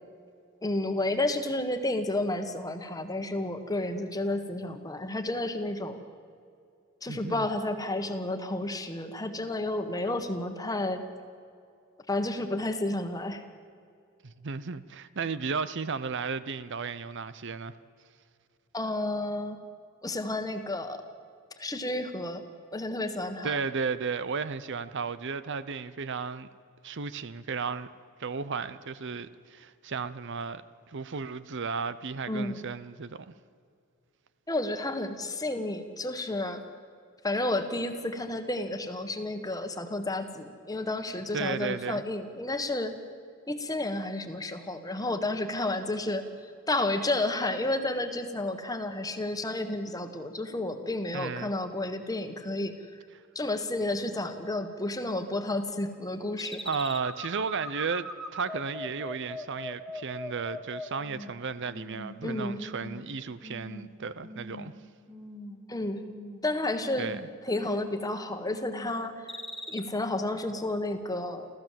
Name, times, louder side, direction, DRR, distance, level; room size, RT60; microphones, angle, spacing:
voice 1, 0.6-6.0 7.0-11.0 12.1-13.4 18.7-19.6 20.0-21.0 21.6-22.4 22.7-23.6 32.3-32.6 34.5-36.6 37.2-42.9 43.5-46.3 46.7-52.7 53.3-56.6 62.2-62.6 65.7-66.0 66.4-67.1 67.4-69.4 69.7-71.5, left 2 dB, 15° left, 1.5 m, -31 dB
voice 2, 7.1-7.5 14.2-17.7 23.4-26.5 26.8-27.9 28.2-33.3 41.3-42.0 51.1-51.5 56.6-64.7 67.0-67.3, right 5 dB, 55° right, 0.7 m, -34 dB
sound 1, 56.4-61.3 61.7-62.2 62.5-63.0 63.4-63.8 64.2-64.8 65.1-65.6 65.9-66.4 66.7-67.2 67.6-68.1 68.5-68.9 69.3-69.8, left 1 dB, ahead, 1.4 m, -41 dB
29.0 x 14.5 x 7.6 m
head